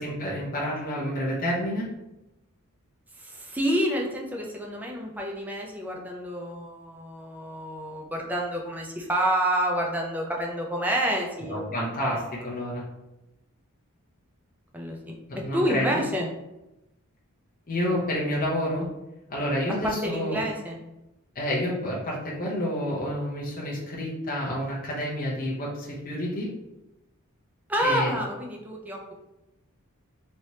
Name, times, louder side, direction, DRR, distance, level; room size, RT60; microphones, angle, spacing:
voice 1, 0.0-1.9 11.4-12.8 15.3-16.0 17.7-18.9 19.3-20.4 21.3-26.5 27.8-28.1, equal, 40° left, -5 dB, 0.8 m, -29 dB
voice 2, 3.2-12.2 14.7-15.1 15.5-16.3 19.8-20.8 27.7-29.1, equal, 5° right, -1 dB, 0.4 m, -29 dB
3.2 x 2.9 x 2.7 m, 0.95 s
head